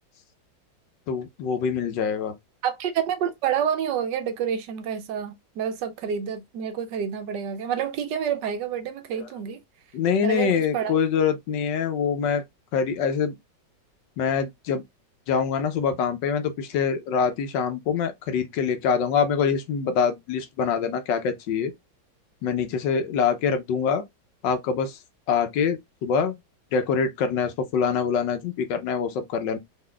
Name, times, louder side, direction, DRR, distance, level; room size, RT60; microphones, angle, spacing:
voice 1, 1.1-2.4 9.1-9.2 9.9-12.4 12.7-13.3 14.2-14.8 15.3-21.7 22.4-24.0 24.4-25.0 25.3-26.4 26.7-29.6, left 6 dB, 75° left, 1.4 m, -25 dB
voice 2, 2.6-9.6 10.2-10.9, right 8 dB, 75° right, 1.3 m, -28 dB
3.9 x 3.6 x 2.2 m
omnidirectional pair, 2.0 m